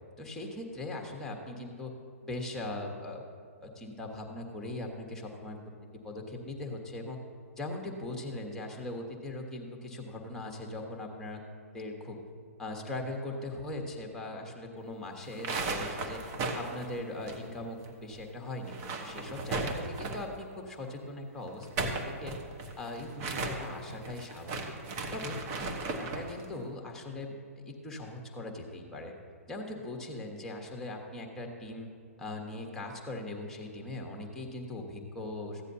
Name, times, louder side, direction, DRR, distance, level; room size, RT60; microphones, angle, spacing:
voice 1, 0.2-1.9 2.2-3.2 3.6-5.6 6.0-7.2 7.6-11.4 11.7-12.2 12.6-16.2 16.5-18.7 19.0-22.4 22.8-24.6 25.1-27.4 27.6-29.1 29.5-31.9 32.2-35.6, left 2 dB, 5° left, 1 dB, 1.4 m, -40 dB
sound 1, 15.2-17.9 18.1-18.2 18.6-20.4 21.5-26.3, right 3 dB, 30° right, 1.2 m, -36 dB
15.0 x 9.7 x 2.8 m, 2.3 s
figure-of-eight pair, 120°, 8 cm